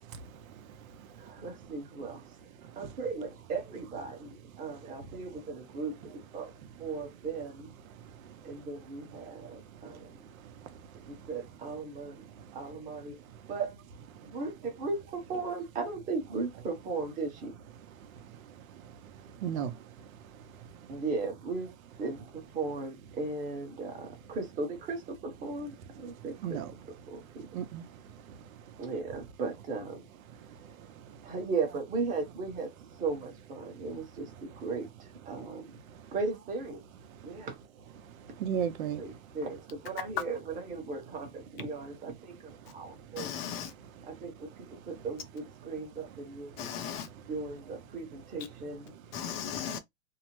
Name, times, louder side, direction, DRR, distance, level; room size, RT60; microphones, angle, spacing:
voice 1, 1.2-2.2 2.8-7.7 8.4-10.3 11.1-12.2 12.5-13.2 13.5-13.8 14.2-17.5 20.9-21.7 22.0-27.5 28.8-30.0 30.6-30.7 31.2-32.7 33.0-35.8 36.1-36.8 37.2-37.6 39.0-43.3 44.0-46.6 47.3-49.0, right 4 dB, 20° right, 1.0 m, -37 dB
voice 2, 10.4-10.7 18.3-18.4 18.7-18.8 19.4-19.8 26.4-26.7 27.5-27.8 28.1-28.4 38.4-39.0, right 8 dB, 70° right, 0.7 m, -34 dB
voice 3, 43.2-43.7 46.6-47.1 49.1-49.8, left 8 dB, 45° left, 0.6 m, -36 dB
2.7 x 2.0 x 3.0 m
supercardioid pair, 150°, 43 cm